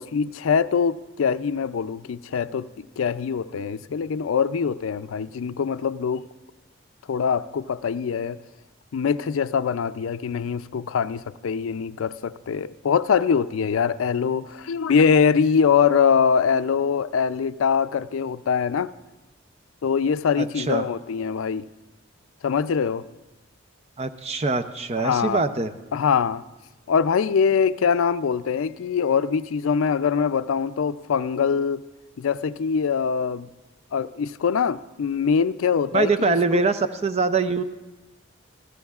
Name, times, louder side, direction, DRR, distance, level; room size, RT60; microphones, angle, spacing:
voice 1, 0.0-6.2 7.1-8.4 8.9-18.9 19.8-21.7 22.4-23.1 25.0-25.4 25.9-26.4 26.9-31.8 32.2-33.5 33.9-36.4, left 6 dB, 90° left, 0.4 m, -23 dB
voice 2, 20.4-20.8 24.0-25.7 35.9-37.6, right 4 dB, 30° right, 0.5 m, -23 dB
26.5 x 15.0 x 2.4 m
head